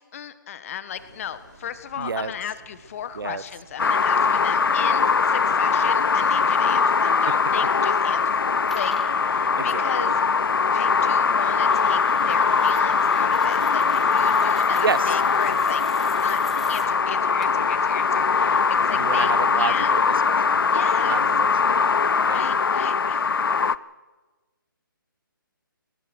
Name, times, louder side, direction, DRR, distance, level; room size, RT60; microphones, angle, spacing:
voice 1, 0.0-8.4 8.7-16.4 16.7-19.9 20.7-21.2 22.3-23.6, left 9 dB, 40° left, 13 dB, 1.6 m, -36 dB
sound 1, 1.0-19.0, right 3 dB, 55° right, 4.6 m, -52 dB
voice 2, 2.0-2.3 3.1-3.4 7.0-7.3 9.6-10.1 14.8-15.2 19.0-20.5 21.1-21.9 22.2-22.4, right 5 dB, 75° right, 18 dB, 1.1 m, -30 dB
sound 2, 3.8-23.7, left 5 dB, 75° left, 0.7 m, -21 dB
sound 3, 8.1-8.2 8.7-16.9 17.4-17.5, left 1 dB, ahead, 1.3 m, -46 dB
23.0 x 20.0 x 6.3 m, 1.2 s
hypercardioid pair, 155°, 12 cm